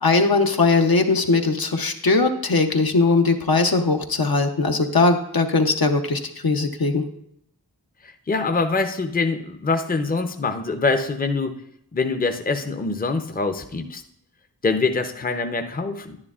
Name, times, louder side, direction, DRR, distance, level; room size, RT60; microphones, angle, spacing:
voice 1, 0.0-7.0, left 3 dB, 65° left, 4 dB, 0.8 m, -20 dB
voice 2, 8.3-11.5 11.9-14.0 14.6-16.2, left 3 dB, 25° left, 6 dB, 0.6 m, -24 dB
10.0 x 9.7 x 2.4 m, 0.72 s
wide cardioid pair, 40°, 38 cm